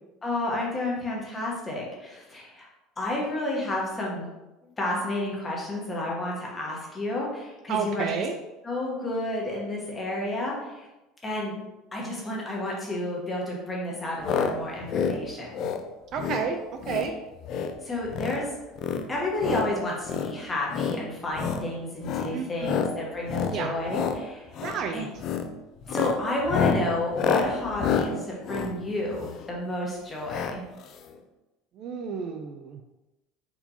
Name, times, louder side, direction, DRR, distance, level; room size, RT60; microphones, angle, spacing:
voice 1, 0.2-2.7 3.0-4.3 4.8-8.1 8.6-10.9 11.2-11.5 11.9-15.7 17.8-18.5 19.1-24.6 24.9-25.1 25.9-30.6, left 1 dB, 15° left, -3 dB, 1.1 m, -31 dB
voice 2, 7.7-8.3 16.1-16.6 16.9-17.1 22.3-22.8 23.5-23.7 24.6-25.1 31.8-32.8, right 6 dB, 40° right, 5 dB, 0.3 m, -30 dB
sound 1, 14.2-14.5 14.8-15.2 15.5-15.8 16.2-16.4 16.8-17.1 17.4-17.7 18.1-18.4 18.8-19.7 20.0-20.3 20.7-21.0 21.3-21.6 22.0-22.3 22.6-22.9 23.3-23.6 23.9-24.2 24.5-24.8 25.2-25.5 25.8-29.5 30.3-30.6 30.8-30.9 31.1-31.2, left 6 dB, 40° left, 0.4 m, -28 dB
4.4 x 4.1 x 2.8 m, 1.0 s
cardioid pair, 165°, 0 cm